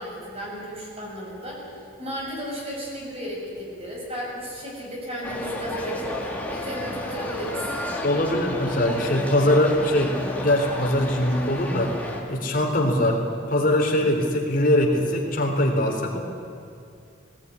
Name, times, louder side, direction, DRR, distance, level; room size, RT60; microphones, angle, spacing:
voice 1, 0.0-1.6 2.0-6.2 6.5-7.7, equal, 30° right, -3 dB, 6.8 m, -34 dB
sound 1, 5.2-12.2, left 1 dB, 10° left, 2.5 m, -32 dB
voice 2, 8.0-11.9 12.3-13.2 13.5-16.2, left 1 dB, 45° left, 1 dB, 3.6 m, -22 dB
18.5 x 18.0 x 9.7 m, 2.4 s
head